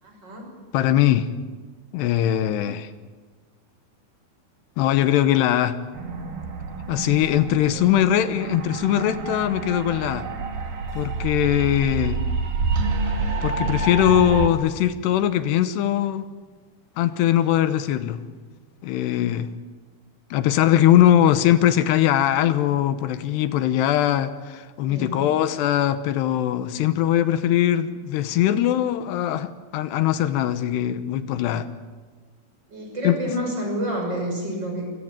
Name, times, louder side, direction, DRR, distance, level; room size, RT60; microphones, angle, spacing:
voice 1, 0.0-0.6 7.7-8.2 24.8-25.3 32.7-34.9, equal, 25° right, 1 dB, 6.7 m, -30 dB
voice 2, 0.7-1.3 1.9-2.9 4.8-5.8 6.9-10.3 10.9-12.2 13.4-16.2 17.0-18.2 18.8-19.5 20.3-31.7 33.0-33.2, left 11 dB, 80° left, 11 dB, 3.1 m, -21 dB
sound 1, 5.9-14.5, right 3 dB, 55° right, 3.5 m, -28 dB
27.0 x 19.0 x 9.0 m, 1.4 s
omnidirectional pair, 4.8 m